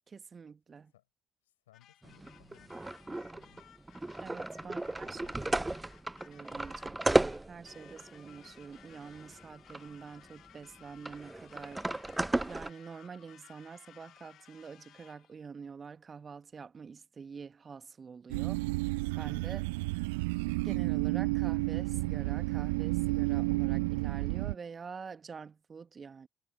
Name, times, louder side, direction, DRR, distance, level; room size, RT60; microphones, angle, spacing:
voice 1, 0.1-0.9 4.2-5.2 6.2-12.1 12.4-18.9 19.2-19.7 20.6-26.3, right 5 dB, 35° right, 1.5 m, -47 dB
voice 2, 1.4-3.7 4.6-5.9, left 14 dB, 75° left, 5.7 m, -64 dB
sound 1, 1.7-15.4, left 11 dB, 55° left, 2.5 m, -59 dB
sound 2, 2.0-9.9 10.2-10.3 11.0-12.7, right 2 dB, 15° right, 0.6 m, -34 dB
sound 3, 18.3-24.5, right 25 dB, 70° right, 0.3 m, -31 dB
figure-of-eight pair, 50°, 0 cm